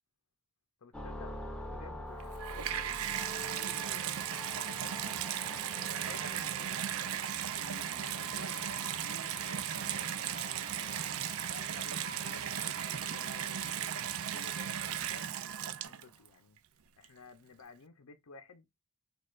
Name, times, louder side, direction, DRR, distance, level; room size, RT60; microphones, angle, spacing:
voice 1, 0.8-1.4 1.7-4.2 4.5-5.2 5.9-6.8 7.5-11.1 11.4-16.6 17.0-18.7, left 4 dB, 85° left, 0.6 m, -54 dB
sound 1, 0.9-16.0, left 1 dB, 5° left, 0.6 m, -48 dB
Water tap faucet / Bathtub (filling or washing), 2.2-16.3 17.0-17.1, right 10 dB, 75° right, 0.4 m, -36 dB
sound 2, 2.4-15.9, right 5 dB, 60° right, 0.8 m, -49 dB
6.4 x 2.3 x 2.4 m
head